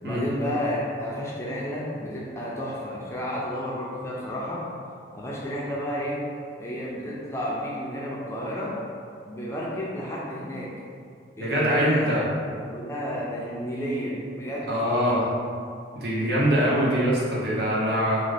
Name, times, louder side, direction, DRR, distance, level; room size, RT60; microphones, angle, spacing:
voice 1, 0.0-4.7 5.1-6.2 6.6-8.7 9.3-10.7 11.4-12.3 12.6-14.7 16.2-17.1, equal, 15° left, -6 dB, 0.4 m, -31 dB
voice 2, 11.4-12.2 14.7-15.3 15.9-18.2, equal, 60° right, -5 dB, 0.6 m, -23 dB
2.5 x 2.4 x 3.2 m, 2.2 s
head